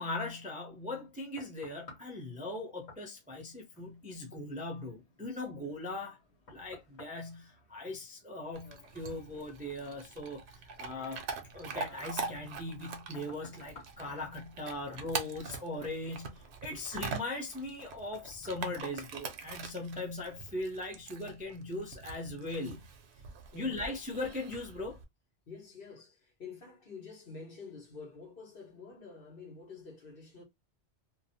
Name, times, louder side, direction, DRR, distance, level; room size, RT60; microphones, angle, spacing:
voice 1, 0.0-6.2 6.5-11.2 11.5-22.8 23.5-25.0, left 2 dB, 10° right, 0.4 m, -39 dB
sound 1, 0.7-20.0 20.5-20.6, left 3 dB, 75° left, 1.5 m, -59 dB
Chewing mastication / Dog, 8.5-25.0, right 5 dB, 75° right, 0.8 m, -44 dB
voice 2, 23.5-23.8 25.5-30.4, left 4 dB, 55° left, 1.2 m, -48 dB
2.6 x 2.2 x 2.7 m
omnidirectional pair, 1.1 m